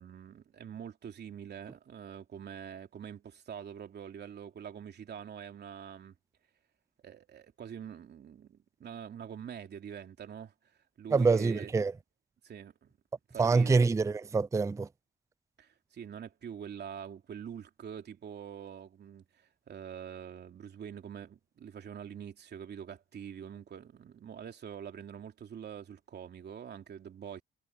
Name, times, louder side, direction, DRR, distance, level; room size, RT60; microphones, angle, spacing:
voice 1, 0.0-6.1 7.0-10.5 11.0-11.7 12.4-12.9 13.3-13.8 15.6-27.4, right 8 dB, 55° right, 3.0 m, -45 dB
voice 2, 11.1-11.9 13.4-14.9, right 4 dB, 15° right, 0.4 m, -25 dB
cardioid pair, 90°, 20 cm